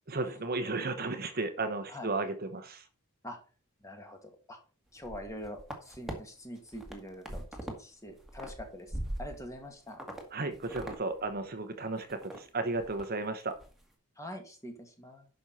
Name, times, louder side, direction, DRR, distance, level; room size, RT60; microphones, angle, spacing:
voice 1, 0.1-2.8 10.3-13.5, right 3 dB, 45° right, 9 dB, 1.0 m, -34 dB
voice 2, 3.8-4.6 4.9-10.0 14.2-15.3, equal, 15° left, 4 dB, 2.1 m, -44 dB
sound 1, 5.0-6.1 6.6-7.8 8.1-9.6 10.0-10.2 10.5-11.0 11.3-11.4 11.8-12.4 12.7-13.1 13.4-13.7, right 1 dB, ahead, 1.9 m, -41 dB
10.5 x 6.3 x 4.2 m, 0.36 s
head